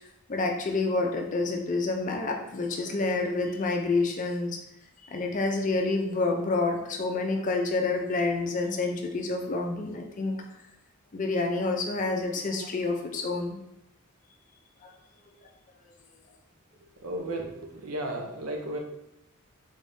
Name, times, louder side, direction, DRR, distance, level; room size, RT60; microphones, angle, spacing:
voice 1, 0.3-4.6 5.0-10.4 11.1-13.6 14.8-14.9, left 3 dB, 35° left, 3 dB, 0.5 m, -28 dB
voice 2, 16.9-18.8, right 1 dB, 80° right, 1 dB, 0.7 m, -34 dB
3.5 x 3.5 x 2.7 m, 0.84 s
head